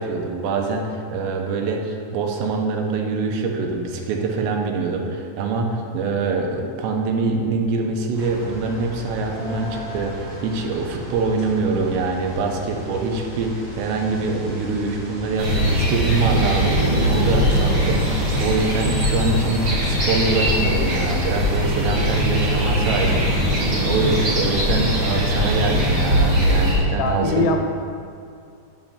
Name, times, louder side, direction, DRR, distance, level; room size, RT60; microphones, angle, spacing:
voice 1, 0.0-27.5, right 3 dB, 85° right, 2 dB, 3.0 m, -24 dB
sound 1, 8.1-25.2, equal, 35° right, 2.3 m, -36 dB
sound 2, 15.4-26.8, equal, 60° right, 1.1 m, -20 dB
voice 2, 27.0-27.7, left 3 dB, 80° left, 5 dB, 2.6 m, -21 dB
9.4 x 4.4 x 7.3 m, 2.4 s
omnidirectional pair, 5.1 m